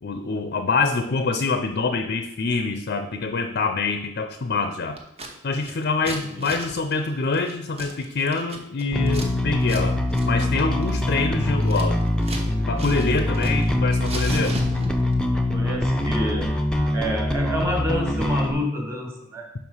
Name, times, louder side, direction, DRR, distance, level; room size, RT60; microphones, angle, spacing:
voice 1, 0.0-5.0 5.4-10.0 10.2-12.0 12.6-14.6, left 3 dB, 50° left, 7 dB, 0.5 m, -25 dB
Scissors, 5.0-5.3 5.6-9.3 9.6-9.8 10.1-10.3 10.6-12.5 12.8-13.7 14.0-15.1, right 2 dB, 30° right, 1.0 m, -36 dB
Bass guitar, 8.9-18.5, left 1 dB, 5° left, 0.6 m, -23 dB
voice 2, 15.5-16.6 16.9-19.5, left 1 dB, 15° right, 0 dB, 1.6 m, -28 dB
5.8 x 4.8 x 5.5 m, 0.81 s
head